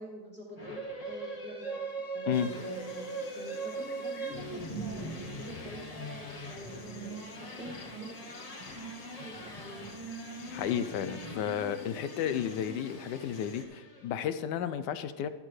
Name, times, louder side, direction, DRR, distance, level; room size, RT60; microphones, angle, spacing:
voice 1, 0.0-8.2 9.2-9.9, equal, 5° left, -4 dB, 1.7 m, -46 dB
sound 1, 0.6-14.2, right 2 dB, 25° left, 0.9 m, -41 dB
Insect, 2.3-13.6, left 4 dB, 60° left, 1.5 m, -51 dB
voice 2, 10.5-15.3, left 9 dB, 80° left, 12 dB, 1.2 m, -32 dB
12.0 x 12.0 x 3.2 m, 1.3 s
omnidirectional pair, 1.9 m